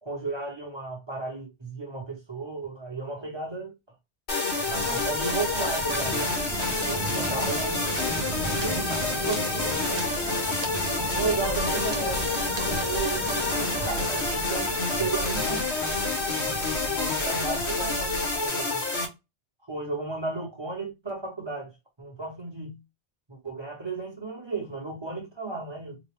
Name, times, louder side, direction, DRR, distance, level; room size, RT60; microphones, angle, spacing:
voice 1, 0.0-3.7 4.7-6.3 6.9-7.8 8.4-9.9 10.9-15.7 16.9-18.8 19.7-21.7 22.0-22.8 23.3-26.0, right 3 dB, 25° right, 1.0 m, -34 dB
sound 1, 4.3-19.1, left 3 dB, 80° left, 1.5 m, -28 dB
Waves surf, 4.5-18.5, right 3 dB, 45° right, 0.7 m, -36 dB
4.0 x 2.3 x 3.3 m
omnidirectional pair, 1.1 m